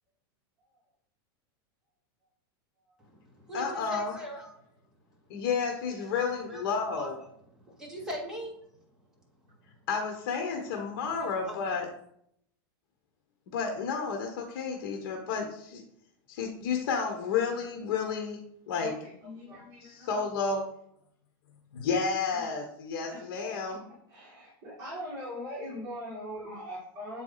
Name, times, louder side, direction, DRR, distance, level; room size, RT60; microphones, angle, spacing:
voice 1, 3.0-4.6 5.9-6.1 6.5-6.7 7.0-7.3 7.6-8.6 9.9-10.0 10.3-10.6 11.0-11.8, equal, 5° right, -3 dB, 1.5 m, -42 dB
voice 2, 3.5-4.1 5.3-7.2 9.9-11.9 13.5-15.8 16.3-18.4 18.7-18.9 19.8-20.7 21.7-23.8, left 5 dB, 55° left, 2 dB, 1.2 m, -31 dB
voice 3, 18.8-20.2 22.3-22.5 23.1-23.8 24.1-27.2, equal, 25° right, -8 dB, 2.4 m, -41 dB
7.5 x 4.6 x 4.0 m, 0.70 s
supercardioid pair, 170°, 12 cm